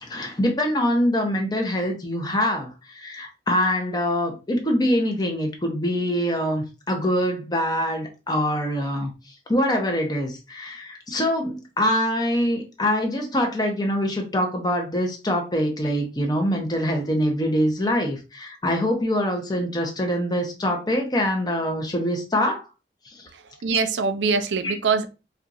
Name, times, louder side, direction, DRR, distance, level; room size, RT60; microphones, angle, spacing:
voice 1, 0.0-9.1 9.5-22.7 23.1-23.3 24.6-24.7, equal, 20° left, 0.8 m, -24 dB
voice 2, 23.3-25.1, right 5 dB, 80° right, 0.5 m, -24 dB
4.4 x 2.4 x 2.6 m
head